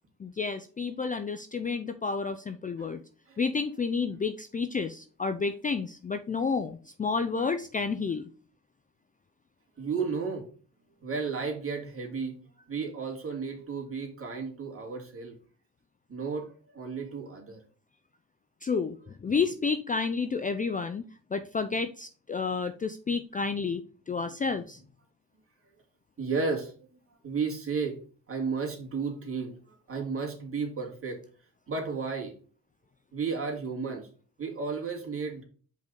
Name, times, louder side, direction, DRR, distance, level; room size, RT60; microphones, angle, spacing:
voice 1, 0.2-3.0 3.4-8.2 18.6-24.8, left 5 dB, 20° left, 9 dB, 0.5 m, -30 dB
voice 2, 9.8-10.5 11.0-12.4 12.7-15.4 16.1-17.6 26.2-26.7 27.2-28.0 28.3-29.5 29.9-31.2 31.7-32.3 33.1-34.1 34.4-35.4, right 5 dB, 35° right, 1 dB, 2.4 m, -33 dB
5.1 x 4.0 x 5.3 m, 0.41 s
supercardioid pair, 75°, 39 cm